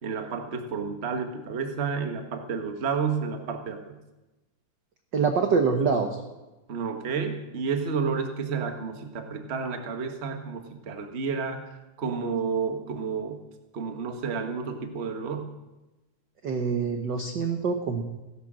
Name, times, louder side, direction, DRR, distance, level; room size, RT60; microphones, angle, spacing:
voice 1, 0.0-3.9 6.7-13.4 13.7-15.5, right 5 dB, 40° right, 5 dB, 0.9 m, -31 dB
voice 2, 5.1-6.2 16.4-18.0, right 5 dB, 65° right, 5 dB, 1.1 m, -25 dB
16.0 x 11.5 x 7.5 m, 1.1 s
omnidirectional pair, 3.6 m